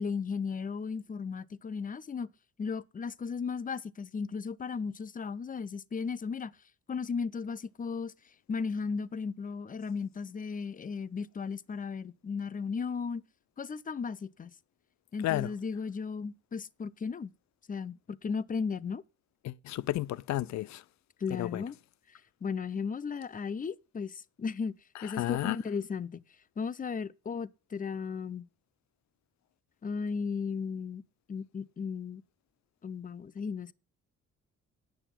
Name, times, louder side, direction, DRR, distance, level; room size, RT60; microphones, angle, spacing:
voice 1, 0.0-2.3 2.6-6.5 6.9-8.1 8.5-13.2 13.6-14.5 15.1-17.3 17.7-19.0 21.2-21.8 22.1-24.8 25.0-26.2 26.6-28.5 29.8-31.0 31.3-32.2 32.8-33.7, left 5 dB, 25° left, 0.6 m, -35 dB
voice 2, 19.4-20.8 21.4-21.6 25.2-25.6, left 15 dB, 65° left, 0.5 m, -32 dB
9.2 x 6.8 x 8.8 m
cardioid pair, 90°, 30 cm